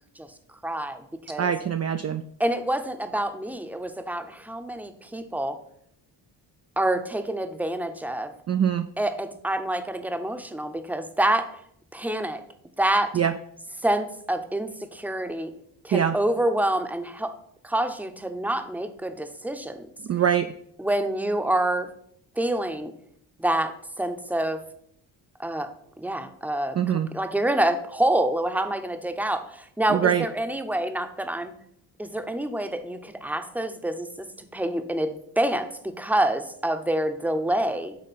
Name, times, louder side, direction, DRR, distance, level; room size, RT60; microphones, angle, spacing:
voice 1, 0.6-1.5 2.4-5.5 6.8-8.3 9.0-11.5 11.9-12.4 12.8-13.1 13.8-15.5 15.8-17.3 17.6-19.9 20.8-21.9 22.4-22.9 23.4-24.6 25.4-25.7 26.0-31.5 32.0-34.3 34.5-38.0, right 1 dB, 5° right, 8 dB, 0.8 m, -27 dB
voice 2, 1.4-2.2 8.5-8.9 13.1-13.3 15.9-16.2 20.0-20.5 26.8-27.1 29.9-30.3, right 9 dB, 35° right, 8 dB, 0.4 m, -23 dB
9.2 x 3.7 x 4.2 m, 0.69 s
cardioid pair, 65°, 48 cm